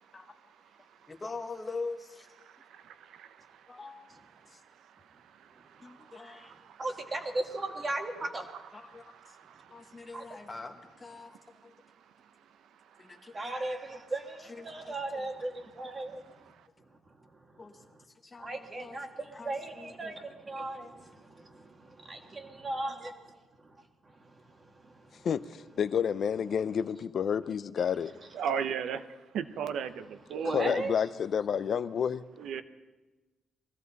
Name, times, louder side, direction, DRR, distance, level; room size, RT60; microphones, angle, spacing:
voice 1, 1.1-2.3 3.7-4.0 4.5-4.6 5.8-6.6 8.7-9.4 9.7-11.7 13.0-13.5 13.9-14.0 14.4-15.3 17.6-17.9 18.2-19.0 19.3-20.2, left 3 dB, 15° left, 1.1 m, -44 dB
voice 2, 2.7-3.3 6.2-6.5 7.5-7.6 8.5-9.4 28.3-29.0 29.3-30.8 32.4-32.6, right 7 dB, 60° right, 0.8 m, -36 dB
voice 3, 6.8-8.5 10.1-10.2 13.3-16.2 18.4-23.2 23.6-23.7 24.2-24.3 24.6-25.1 30.4-30.9, right 2 dB, 20° right, 1.5 m, -37 dB
voice 4, 25.2-28.1 30.5-32.2, left 7 dB, 40° left, 0.5 m, -29 dB
21.0 x 16.0 x 4.1 m
cardioid pair, 180°, 0 cm